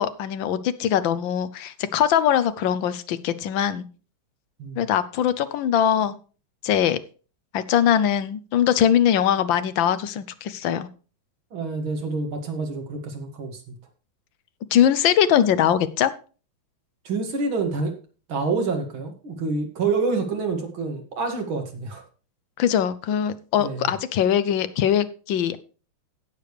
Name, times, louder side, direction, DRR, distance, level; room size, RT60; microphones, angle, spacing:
voice 1, 0.0-3.8 4.8-6.1 6.6-7.0 7.5-10.9 14.7-16.1 22.6-25.6, left 9 dB, 75° left, 14 dB, 1.4 m, -21 dB
voice 2, 11.5-13.8 17.0-17.9 18.3-22.0 23.6-23.9, right 4 dB, 80° right, 3 dB, 2.8 m, -27 dB
17.0 x 6.8 x 3.2 m, 0.37 s
omnidirectional pair, 2.2 m